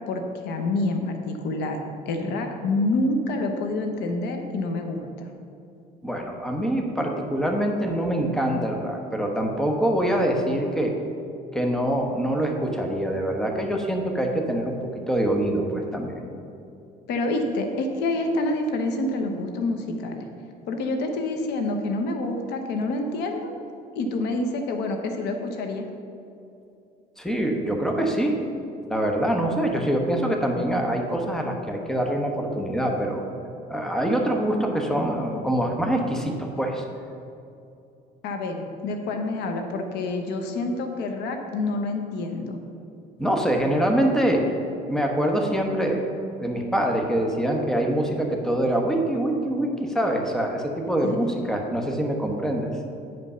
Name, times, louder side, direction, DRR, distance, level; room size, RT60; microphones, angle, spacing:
voice 1, 0.0-1.8 2.1-5.3 17.1-20.3 20.7-23.5 24.0-25.9 38.2-42.6 51.0-51.2, left 2 dB, 80° left, 5 dB, 1.0 m, -27 dB
voice 2, 6.0-11.0 11.5-14.8 15.1-16.2 27.2-28.4 28.9-33.2 33.7-36.8 43.2-44.4 44.9-46.1 46.4-52.7, right 1 dB, 5° left, 1 dB, 1.1 m, -24 dB
9.3 x 5.2 x 5.6 m, 2.7 s
cardioid pair, 110°, 17 cm